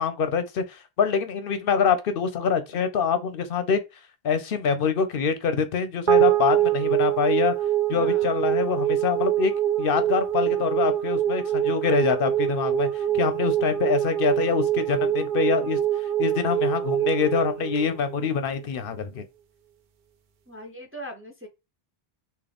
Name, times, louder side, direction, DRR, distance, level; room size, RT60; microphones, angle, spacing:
voice 1, 0.0-3.8 4.2-7.5 7.9-9.5 9.8-15.8 16.2-19.2, left 6 dB, 65° left, 0.7 m, -25 dB
sound 1, 6.1-18.6, right 11 dB, 60° right, 0.6 m, -24 dB
voice 2, 7.9-8.3 13.1-13.2 20.5-21.5, equal, 15° right, 0.5 m, -40 dB
3.8 x 2.4 x 3.4 m
omnidirectional pair, 1.0 m